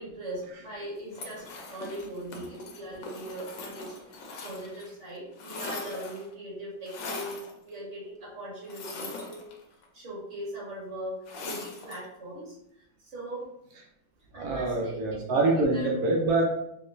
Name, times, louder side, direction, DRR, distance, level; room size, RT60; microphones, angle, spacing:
voice 1, 0.0-9.4 9.9-13.5 14.3-15.2 15.7-15.9, right 1 dB, 40° right, -6 dB, 1.5 m, -40 dB
sound 1, 1.1-4.9 5.2-6.3 6.9-7.5 8.6-9.8 11.3-12.1, left 3 dB, 70° left, 1.2 m, -41 dB
voice 2, 14.3-16.4, right 2 dB, 80° right, -1 dB, 0.8 m, -25 dB
4.8 x 2.1 x 2.6 m, 0.79 s
omnidirectional pair, 2.3 m